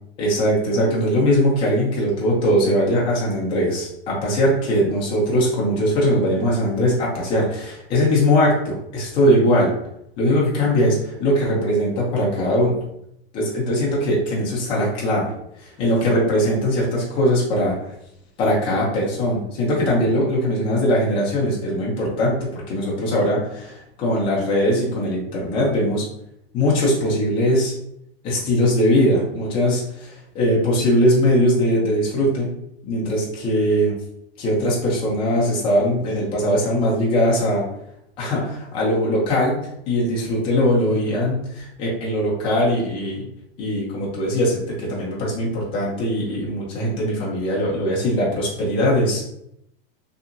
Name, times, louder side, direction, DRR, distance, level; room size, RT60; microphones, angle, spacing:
voice 1, 0.2-9.7 10.2-12.7 13.3-15.3 15.6-17.9 18.4-26.0 26.5-27.7 28.2-32.5 32.9-33.9 34.4-37.6 38.2-39.6 39.9-43.2 43.6-49.2, equal, 15° left, -4 dB, 0.5 m, -20 dB
2.8 x 2.3 x 2.5 m, 0.77 s
supercardioid pair, 175°, 30 cm